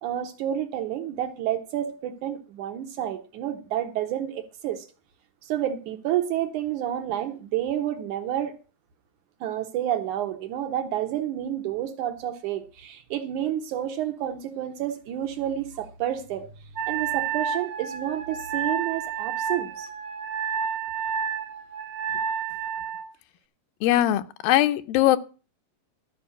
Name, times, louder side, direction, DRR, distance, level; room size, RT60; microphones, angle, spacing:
voice 1, 0.0-4.9 5.5-8.5 9.4-16.5 16.9-19.9, right 11 dB, 70° right, 2.2 m, -29 dB
Wind instrument woodwind instrument, 16.7-23.1, right 7 dB, 55° right, 1.7 m, -30 dB
voice 2, 23.8-25.2, left 13 dB, 90° left, 2.5 m, -21 dB
13.0 x 5.3 x 8.3 m
omnidirectional pair, 4.0 m